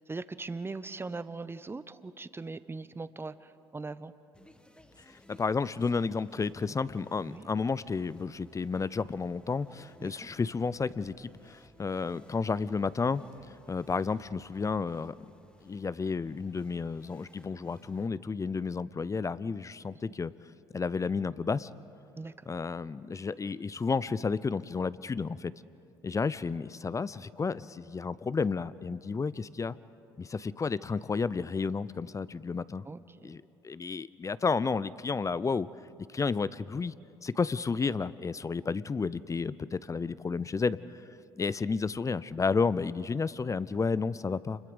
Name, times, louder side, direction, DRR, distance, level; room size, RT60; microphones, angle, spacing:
voice 1, 0.1-4.1 7.3-7.4 10.0-10.1 22.2-22.5 32.9-33.4, right 3 dB, 20° right, 14 dB, 0.9 m, -40 dB
sound 1, 4.3-18.1, left 1 dB, 10° left, 1.6 m, -59 dB
voice 2, 5.1-13.2 13.7-15.1 15.6-20.3 20.7-21.7 22.5-25.5 26.0-29.8 30.2-32.8 33.2-35.7 36.1-36.9 37.2-40.8 41.4-44.6, left 4 dB, 25° left, 18 dB, 0.6 m, -31 dB
29.0 x 21.5 x 5.2 m, 2.7 s
hypercardioid pair, 55°, 13 cm